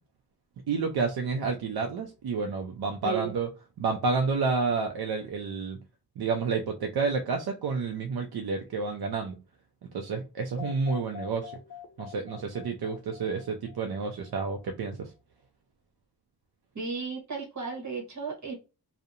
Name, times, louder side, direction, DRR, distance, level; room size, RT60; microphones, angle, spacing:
voice 1, 0.7-3.5 3.8-5.8 6.2-9.4 9.9-11.5 12.0-15.1, right 4 dB, 80° right, 0.5 m, -30 dB
voice 2, 3.0-3.3 16.7-18.6, right 5 dB, 50° right, 1.1 m, -34 dB
sound 1, 10.6-14.5, left 9 dB, 55° left, 0.4 m, -45 dB
2.7 x 2.1 x 2.4 m
wide cardioid pair, 95°, 37 cm